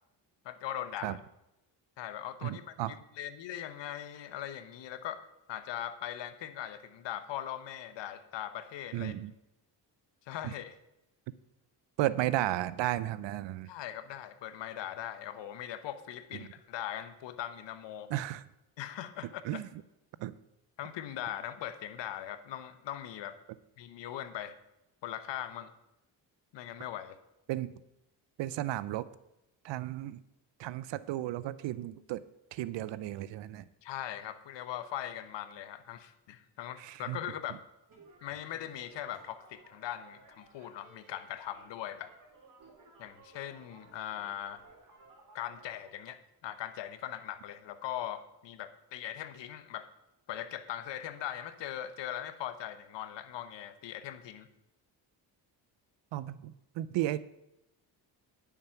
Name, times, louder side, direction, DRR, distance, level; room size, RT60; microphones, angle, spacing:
voice 1, 0.4-1.2 2.0-2.6 3.2-9.1 10.3-10.7 13.6-18.1 18.8-19.6 20.8-23.4 23.8-24.5 25.0-25.7 26.5-27.2 33.8-37.6 38.2-42.1 43.0-44.6 45.3-49.9 50.3-54.5, left 11 dB, 75° left, 11 dB, 1.0 m, -40 dB
voice 2, 2.4-3.0 8.9-9.3 10.4-10.5 12.0-13.7 16.4-16.5 18.1-18.4 19.4-19.7 20.2-20.3 27.5-27.7 28.4-29.1 29.6-30.2 30.6-32.2 32.5-33.7 36.8-37.2 56.1-57.2, right 14 dB, 80° right, 17 dB, 0.6 m, -34 dB
sound 1, 37.9-45.9, right 3 dB, 45° right, 3.4 m, -59 dB
10.0 x 7.2 x 5.7 m, 0.88 s
cardioid pair, 75°, 44 cm